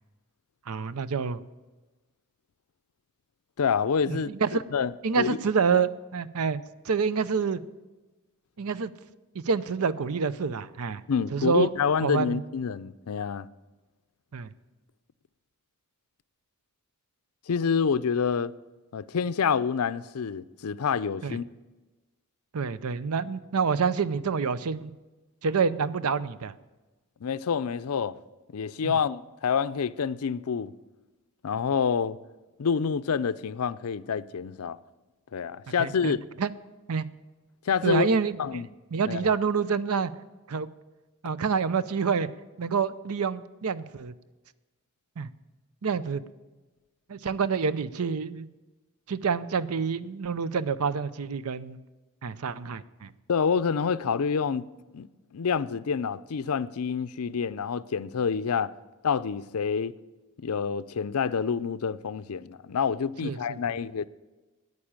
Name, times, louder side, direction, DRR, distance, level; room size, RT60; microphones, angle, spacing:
voice 1, 0.7-1.4 4.1-4.6 5.0-7.6 8.6-8.9 9.3-11.0 11.3-11.7 12.0-12.4 14.3-14.5 21.2-21.4 22.5-24.9 25.4-26.5 28.8-29.0 35.8-36.5 36.9-37.1 37.8-38.6 38.9-40.1 40.5-40.7 41.2-42.3 42.6-44.1 45.2-45.3 45.8-46.2 47.1-48.5 49.1-51.8 52.2-53.1 63.2-63.8, right 5 dB, 75° right, 0.6 m, -27 dB
voice 2, 3.6-4.3 4.7-4.9 5.2-5.4 11.1-13.5 17.5-18.5 18.9-21.4 27.2-28.2 28.5-30.7 31.4-32.2 32.6-34.8 35.3-36.2 37.7-38.1 38.4-38.7 39.1-39.2 53.3-54.7 54.9-55.1 55.3-58.7 59.0-59.9 60.4-64.1, left 6 dB, 75° left, 0.5 m, -27 dB
9.8 x 9.5 x 8.8 m
head